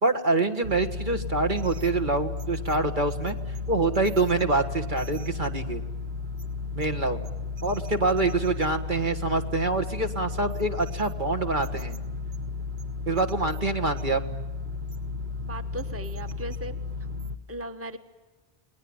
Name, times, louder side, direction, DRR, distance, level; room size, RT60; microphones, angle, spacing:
voice 1, 0.0-3.4 3.7-5.8 6.7-7.2 7.6-12.0 13.1-14.2, right 3 dB, 50° right, 5 dB, 2.0 m, -26 dB
sound 1, 0.6-17.4, left 4 dB, 80° right, 1.4 m, -34 dB
voice 2, 15.5-16.7 17.5-18.0, right 1 dB, 15° right, 7 dB, 1.3 m, -37 dB
30.0 x 20.5 x 8.9 m, 1.1 s
omnidirectional pair, 1.0 m